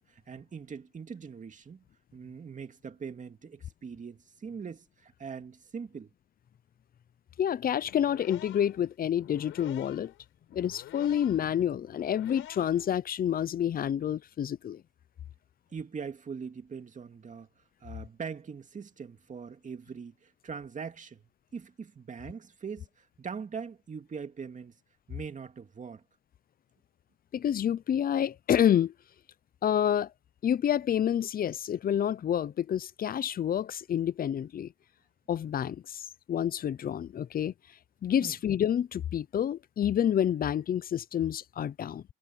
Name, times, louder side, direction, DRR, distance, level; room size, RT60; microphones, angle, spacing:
voice 1, 0.0-1.8 2.1-6.1 15.7-17.5 17.8-24.8 25.1-26.0 38.2-38.4, right 6 dB, 40° right, 2.4 m, -42 dB
voice 2, 7.4-10.1 10.5-14.8 27.3-28.9 29.6-30.1 30.4-34.7 35.3-37.5 38.0-42.0, left 9 dB, 45° left, 0.6 m, -28 dB
sound 1, 7.8-13.0, left 14 dB, 90° left, 6.4 m, -49 dB
cardioid pair, 90°, 20 cm